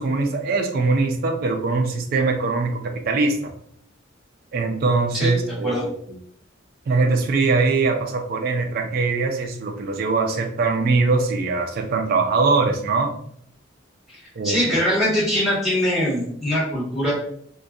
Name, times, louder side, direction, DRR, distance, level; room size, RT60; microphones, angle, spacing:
voice 1, 0.0-3.5 4.5-5.9 6.9-13.1 14.4-14.8, right 3 dB, 50° right, 3 dB, 0.3 m, -22 dB
voice 2, 14.4-17.1, equal, ahead, -8 dB, 1.2 m, -22 dB
2.6 x 2.2 x 2.2 m, 0.66 s
head